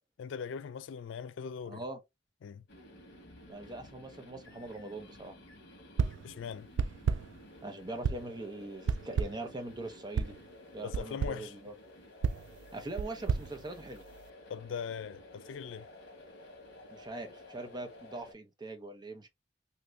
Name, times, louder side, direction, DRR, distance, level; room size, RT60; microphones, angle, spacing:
voice 1, 0.2-1.8 2.4-2.6 6.2-6.7 10.8-11.5 14.5-15.9, left 6 dB, 80° left, 0.4 m, -40 dB
voice 2, 1.7-2.0 3.5-5.4 7.6-10.3 10.7-11.7 12.7-14.0 16.9-19.3, right 2 dB, 25° right, 0.7 m, -42 dB
sound 1, 2.7-18.3, left 1 dB, 60° left, 1.1 m, -53 dB
sound 2, 6.0-6.3 6.8-7.4 8.0-8.4 8.9-9.5 10.2-10.4 10.9-11.5 12.2-14.3, right 6 dB, 70° right, 0.3 m, -33 dB
2.8 x 2.5 x 3.1 m
head